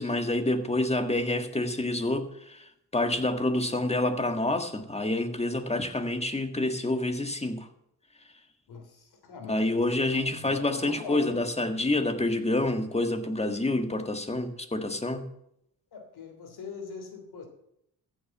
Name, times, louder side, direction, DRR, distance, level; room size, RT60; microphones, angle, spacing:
voice 1, 0.0-7.7 9.5-15.2, left 2 dB, 15° left, 1.7 m, -28 dB
voice 2, 8.7-11.3 15.9-17.5, left 5 dB, 80° left, 3.2 m, -42 dB
15.0 x 7.4 x 7.1 m
cardioid pair, 75°, 38 cm